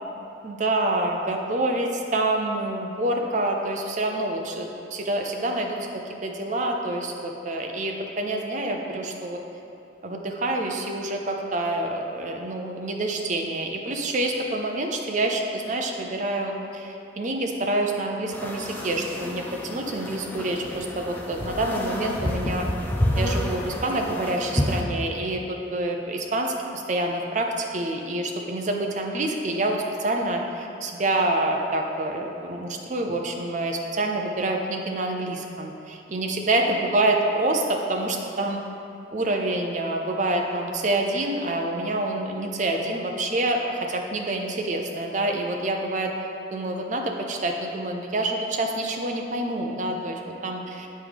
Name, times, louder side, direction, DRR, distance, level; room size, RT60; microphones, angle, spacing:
voice 1, 0.4-9.4 10.0-19.4 19.7-22.7 23.1-38.6 39.1-46.1 46.5-50.9, right 2 dB, 40° right, 2 dB, 0.5 m, -27 dB
sound 1, 18.3-24.8, left 1 dB, 10° left, 0.4 m, -29 dB
7.6 x 4.8 x 3.5 m, 2.7 s
head